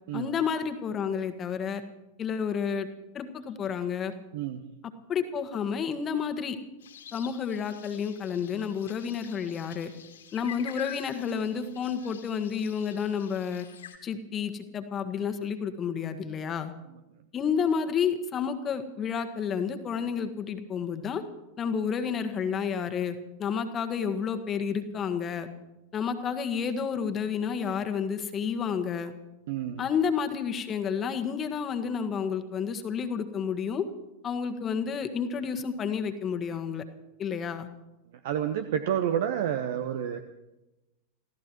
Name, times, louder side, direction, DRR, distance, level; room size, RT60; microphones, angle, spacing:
voice 1, 0.1-1.8 2.2-2.9 3.1-4.1 5.1-6.6 7.1-9.9 10.3-13.7 14.0-16.7 17.3-21.2 21.6-25.5 25.9-29.1 29.8-33.9 34.2-36.8 37.2-37.7, left 7 dB, 25° left, 8 dB, 1.5 m, -30 dB
voice 2, 4.3-4.7 29.5-29.9 38.2-40.2, right 10 dB, 55° right, 9 dB, 0.9 m, -29 dB
sound 1, 6.8-14.0, left 9 dB, 65° left, 2.4 m, -47 dB
28.5 x 16.5 x 3.1 m, 0.99 s
figure-of-eight pair, 90°, 0 cm